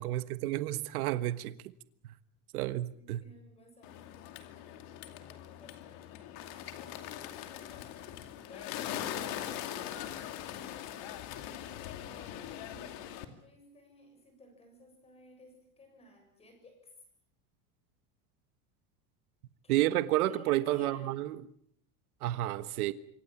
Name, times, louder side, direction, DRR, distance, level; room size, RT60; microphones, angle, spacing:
voice 1, 0.0-1.6 2.5-3.2 19.7-21.4 22.2-22.9, right 15 dB, 85° right, 1.5 m, -30 dB
voice 2, 2.9-8.1 8.5-11.4 11.8-16.9 19.6-19.9 20.2-21.3, left 2 dB, 15° left, 7.0 m, -58 dB
Bird, 3.8-13.2, left 11 dB, 45° left, 2.6 m, -41 dB
26.5 x 25.0 x 7.3 m
supercardioid pair, 175°, 43 cm